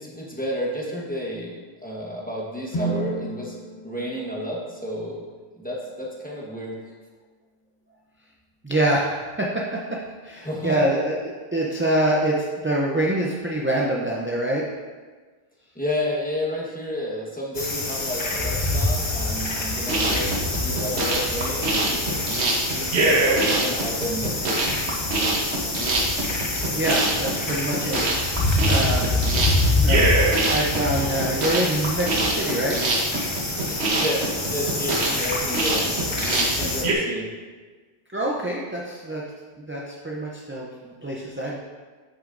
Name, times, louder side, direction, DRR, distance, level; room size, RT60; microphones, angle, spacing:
voice 1, 0.0-3.5 3.8-5.3 5.6-6.8 10.4-10.8 15.7-20.3 20.6-22.2 22.6-24.6 34.0-36.0 36.3-37.3, equal, 10° left, -4 dB, 1.1 m, -31 dB
sound 1, 2.7-6.8, right 3 dB, 45° left, 1.1 m, -34 dB
voice 2, 8.6-9.8 10.2-11.2 11.5-14.6 26.3-29.1 29.8-30.1 30.5-32.8 38.1-39.2 39.6-41.6, right 1 dB, 15° right, -3 dB, 0.4 m, -25 dB
sound 2, 17.5-36.8, left 2 dB, 30° left, 0.7 m, -26 dB
sound 3, 19.8-36.9, right 2 dB, 90° right, 1.3 m, -24 dB
8.5 x 6.1 x 2.6 m, 1.4 s
omnidirectional pair, 1.1 m